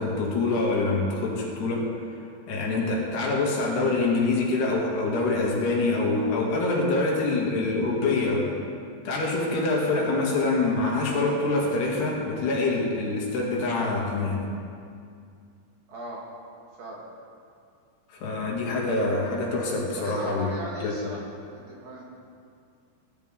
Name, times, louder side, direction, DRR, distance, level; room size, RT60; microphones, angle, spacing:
voice 1, 0.0-1.8 2.5-8.6 9.1-14.4 18.1-20.5 20.8-21.0, left 3 dB, 70° left, -3 dB, 3.8 m, -25 dB
voice 2, 15.9-16.2 16.8-17.0 20.0-21.2 21.5-22.0, equal, 65° right, -3 dB, 2.9 m, -38 dB
18.0 x 11.5 x 3.7 m, 2.3 s
omnidirectional pair, 5.2 m